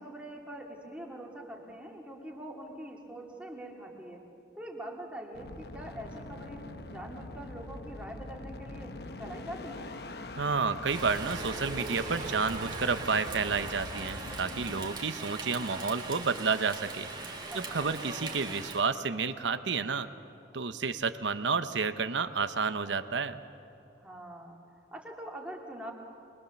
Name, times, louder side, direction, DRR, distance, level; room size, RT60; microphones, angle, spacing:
voice 1, 0.0-4.3 4.5-9.9 17.5-18.0 24.0-24.6 24.9-25.9, right 1 dB, 5° right, -1 dB, 2.4 m, -44 dB
sound 1, 5.3-14.9, left 2 dB, 55° left, 0.9 m, -44 dB
voice 2, 10.4-17.1 17.5-20.1 20.5-23.4, right 5 dB, 80° right, 11 dB, 0.9 m, -30 dB
Rain, 10.9-18.8, right 3 dB, 25° right, 2.0 m, -41 dB
sound 2, 11.1-15.1, right 2 dB, 40° right, 0.9 m, -45 dB
24.0 x 21.5 x 7.1 m, 2.7 s
head